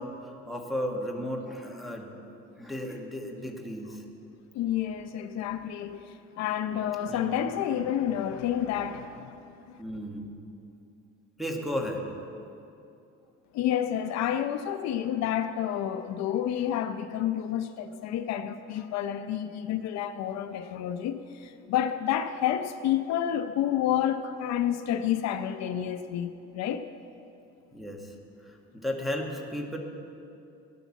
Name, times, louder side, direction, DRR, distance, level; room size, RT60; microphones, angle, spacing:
voice 1, 0.0-4.0 7.0-7.5 9.8-10.3 11.4-12.1 27.7-28.1 28.4-29.8, equal, ahead, -1 dB, 1.3 m, -35 dB
voice 2, 4.5-9.4 9.7-9.8 13.5-26.8, left 10 dB, 65° left, 9 dB, 0.7 m, -29 dB
16.0 x 9.3 x 7.2 m, 2.7 s
cardioid pair, 160°, 29 cm